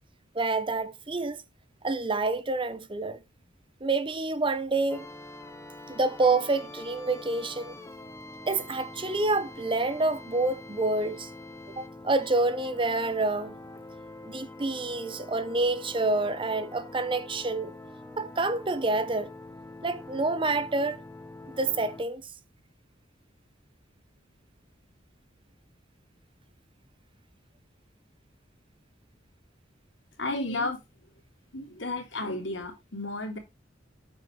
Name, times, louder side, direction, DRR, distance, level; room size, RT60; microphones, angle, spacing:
voice 1, 0.3-1.4 1.8-3.2 3.8-5.1 5.9-7.7 8.5-11.3 11.8-13.6 14.2-17.7 18.2-19.3 19.8-21.0 21.5-22.3, right 3 dB, 30° right, 0.9 m, -28 dB
sound 1, 4.9-22.0, left 2 dB, 15° left, 1.2 m, -45 dB
voice 2, 30.2-30.8 31.5-33.4, left 2 dB, 85° left, 3.1 m, -32 dB
8.3 x 7.8 x 3.3 m
head